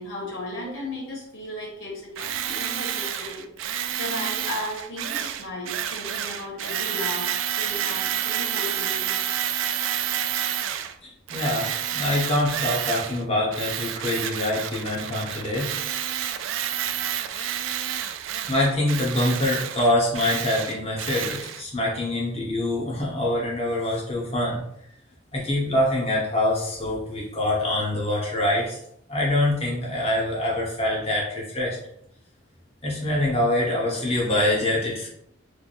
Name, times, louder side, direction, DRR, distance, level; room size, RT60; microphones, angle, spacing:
voice 1, 0.0-9.2, left 1 dB, 90° left, -1 dB, 1.4 m, -35 dB
Tools, 2.2-10.9 11.3-13.2 13.5-21.6, right 10 dB, 85° right, 0.3 m, -29 dB
voice 2, 11.3-16.0 16.2-16.4 17.3-17.5 18.4-24.6 25.3-28.8 29.1-31.8 32.8-35.1, left 1 dB, 30° left, -4 dB, 1.1 m, -25 dB
3.3 x 2.1 x 4.2 m, 0.73 s
head